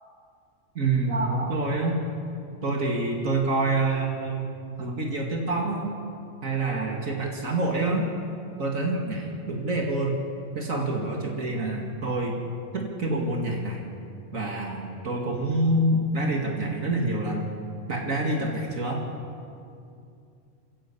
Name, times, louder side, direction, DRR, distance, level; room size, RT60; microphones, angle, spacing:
voice 1, 0.8-2.0 2.6-4.5 4.8-6.0 6.4-8.1 8.6-10.2 10.5-12.3 12.7-13.9 14.3-17.5 17.9-19.0, right 2 dB, 70° right, 0 dB, 2.7 m, -27 dB
27.5 x 14.5 x 8.5 m, 2.5 s
omnidirectional pair, 1.4 m